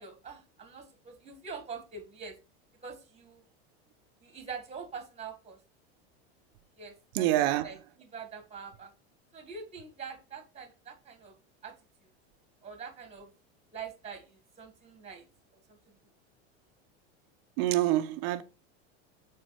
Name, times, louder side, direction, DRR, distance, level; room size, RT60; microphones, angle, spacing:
voice 1, 0.0-2.4 2.8-3.5 4.2-5.6 6.8-8.9 9.3-11.3 11.6-11.8 12.6-13.3 13.7-15.3 15.5-16.0, right 5 dB, 20° right, 1.8 m, -44 dB
voice 2, 7.1-7.7 17.6-18.4, right 14 dB, 60° right, 0.9 m, -26 dB
6.6 x 4.2 x 4.7 m
supercardioid pair, 125°, 33 cm